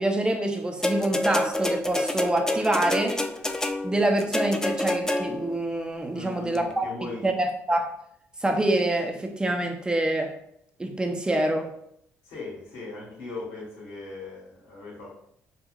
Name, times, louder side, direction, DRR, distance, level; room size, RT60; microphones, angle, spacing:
voice 1, 0.0-3.2 3.8-6.9 7.2-7.9 8.4-10.3 10.8-11.7, right 1 dB, 15° right, 4 dB, 0.7 m, -26 dB
sound 1, 0.8-5.6 6.5-6.6, left 1 dB, 10° left, 0.3 m, -28 dB
voice 2, 6.1-7.3 12.2-15.2, left 3 dB, 85° left, -5 dB, 1.4 m, -39 dB
5.4 x 2.4 x 2.4 m, 0.72 s
supercardioid pair, 75°, 6 cm